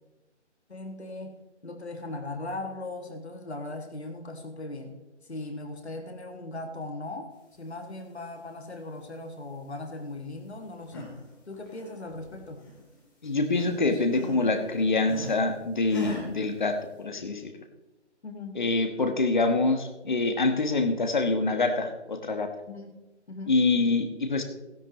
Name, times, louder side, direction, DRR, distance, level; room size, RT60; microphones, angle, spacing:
voice 1, 0.7-5.0 5.2-7.3 7.6-11.1 11.5-12.6 18.2-18.6 22.7-23.0 23.3-23.6, left 2 dB, 65° left, 5 dB, 1.8 m, -38 dB
sound 1, 10.6-11.2 11.5-13.0 13.2-15.4 15.9-16.3, equal, 15° left, 2.1 m, -39 dB
voice 2, 13.2-17.4 18.5-22.5 23.5-24.4, left 3 dB, 40° left, 7 dB, 1.3 m, -25 dB
16.5 x 10.5 x 3.0 m, 1.0 s
figure-of-eight pair, 150°, 35 cm